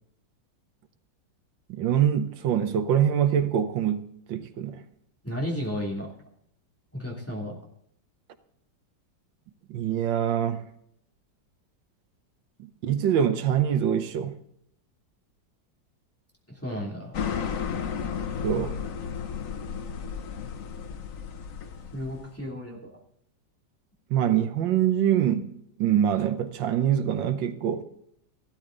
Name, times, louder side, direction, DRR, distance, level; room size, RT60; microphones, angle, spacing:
voice 1, 1.7-4.0 4.3-4.8 9.7-10.6 12.6-14.4 18.4-18.8 24.1-25.5 25.8-27.8, right 9 dB, 85° right, 1.6 m, -24 dB
voice 2, 5.2-6.1 6.9-7.6 16.5-17.2 21.9-23.0, equal, 5° left, 2.6 m, -33 dB
sound 1, 17.1-22.3, left 7 dB, 50° left, 1.2 m, -33 dB
15.0 x 12.5 x 3.9 m
omnidirectional pair, 2.0 m